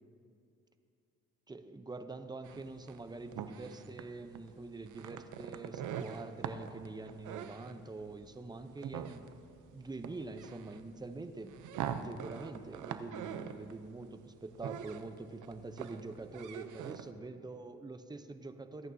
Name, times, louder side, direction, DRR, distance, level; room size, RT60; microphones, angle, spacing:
voice 1, 1.5-9.3 9.7-11.6 12.0-18.9, right 3 dB, 15° right, 9 dB, 0.7 m, -45 dB
sound 1, 2.4-17.1, right 8 dB, 80° right, 0.7 m, -44 dB
25.0 x 9.0 x 2.8 m, 2.4 s
cardioid pair, 90°, 30 cm